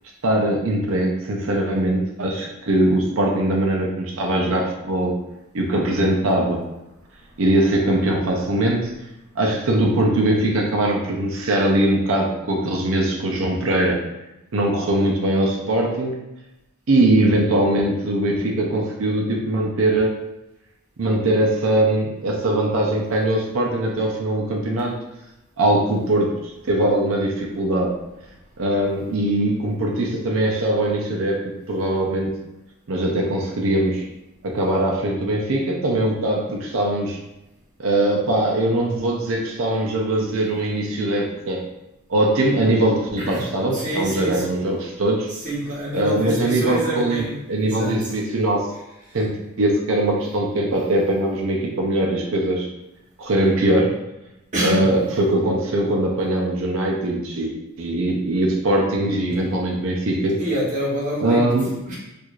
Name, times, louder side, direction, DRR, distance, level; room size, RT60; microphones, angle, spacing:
voice 1, 0.2-5.1 5.5-6.6 7.4-8.9 9.4-14.0 14.5-16.2 16.9-20.2 21.0-25.0 25.6-27.9 28.6-32.4 32.9-34.0 34.4-37.2 37.8-41.6 42.1-45.3 45.9-48.7 49.1-52.7 53.2-54.0 54.6-60.4 61.2-61.7, right 1 dB, 65° right, -1 dB, 0.5 m, -21 dB
voice 2, 43.7-44.5 45.3-48.2 54.5-55.0 59.2-59.5 60.4-61.5 61.9-62.0, right 1 dB, 35° right, -6 dB, 1.1 m, -27 dB
4.5 x 2.5 x 2.4 m, 0.91 s
head